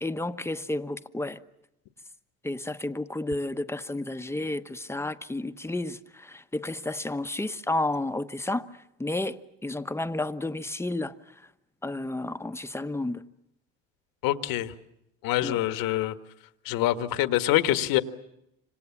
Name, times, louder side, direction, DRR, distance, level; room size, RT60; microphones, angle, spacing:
voice 1, 0.0-1.4 2.4-8.7 9.0-11.2 11.8-13.2 15.4-15.6, left 2 dB, 5° left, 1.1 m, -31 dB
voice 2, 14.2-14.7 15.2-16.2 16.7-18.0, left 14 dB, 65° left, 1.7 m, -25 dB
26.5 x 25.5 x 7.3 m
supercardioid pair, 85°, 37 cm